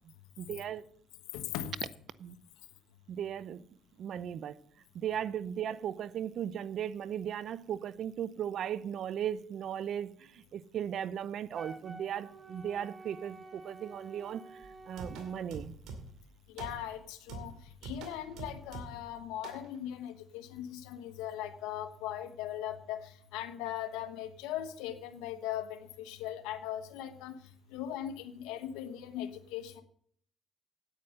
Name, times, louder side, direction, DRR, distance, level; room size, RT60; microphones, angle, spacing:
voice 1, 0.4-0.8 2.2-2.4 3.1-3.6 4.0-4.5 4.9-15.8, right 9 dB, 60° right, 0.6 m, -37 dB
voice 2, 1.3-1.7 16.5-17.5 17.8-27.4 27.7-29.8, left 11 dB, 90° left, 1.2 m, -39 dB
Wind instrument woodwind instrument, 11.5-15.5, right 3 dB, 25° right, 1.3 m, -50 dB
sound 1, 14.6-16.3 16.6-17.0 17.3-19.1 19.4-19.7, right 3 dB, 80° right, 2.3 m, -45 dB
9.1 x 8.9 x 6.4 m
supercardioid pair, 80°, 0 cm